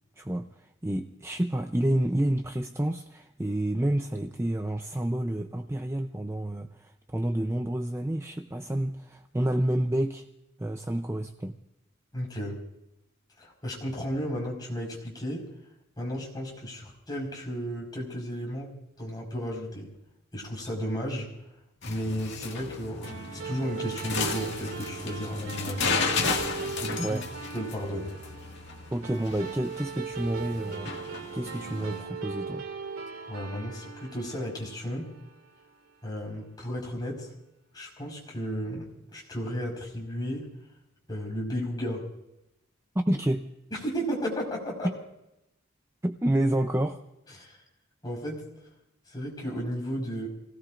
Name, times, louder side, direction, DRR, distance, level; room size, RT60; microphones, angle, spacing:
voice 1, 0.2-10.3 10.6-11.5 27.0-27.2 28.9-32.7 42.9-43.5 46.0-47.0, right 1 dB, 15° right, 5 dB, 0.6 m, -29 dB
voice 2, 12.1-12.6 13.4-15.5 16.0-18.7 19.0-19.9 20.3-21.3 21.8-25.8 26.8-27.2 27.5-28.1 33.3-35.1 36.0-37.3 37.7-40.5 41.1-42.0 43.7-44.9 47.4-47.6 48.0-48.4 49.1-50.3, equal, 20° left, -2 dB, 4.9 m, -34 dB
sound 1, 21.8-32.0, left 4 dB, 55° left, 2.0 m, -34 dB
sound 2, 23.0-35.8, right 5 dB, 75° right, 2.4 m, -39 dB
29.5 x 17.5 x 2.5 m, 0.86 s
head